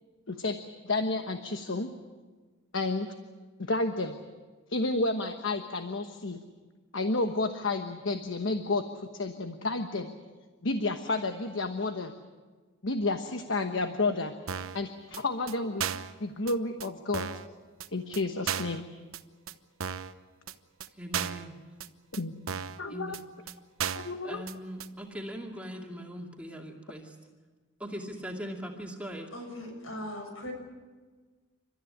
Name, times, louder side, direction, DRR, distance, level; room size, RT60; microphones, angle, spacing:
voice 1, 0.3-0.6 0.8-1.9 2.7-3.1 3.7-4.2 4.7-6.4 6.9-10.1 10.6-12.1 12.8-14.3 14.7-15.8 16.2-17.3 17.9-18.8 22.1-22.3 22.8-23.2 23.9-24.4, left 2 dB, 65° left, 7 dB, 1.2 m, -31 dB
sound 1, 14.5-14.8 15.1-15.2 15.5-15.6 15.8-16.1 16.5-16.6 16.8-16.9 17.1-17.5 17.8-17.9 18.1-18.2 18.5-18.8 19.1-19.2 19.5-19.6 19.8-20.1 20.5-20.6 20.8-20.9 21.1-21.5 21.8-21.9 22.1-22.2 22.5-22.8 23.1-23.2 23.5-23.6 23.8-24.1 24.5-24.6 24.8-24.9, right 8 dB, 90° right, 1.0 m, -34 dB
voice 2, 21.0-21.5 22.9-23.2 24.2-27.2 27.8-29.3, equal, 5° right, 0 dB, 2.4 m, -40 dB
voice 3, 29.3-30.5, left 1 dB, 80° left, 4 dB, 6.8 m, -39 dB
29.5 x 13.5 x 9.8 m, 1.4 s
head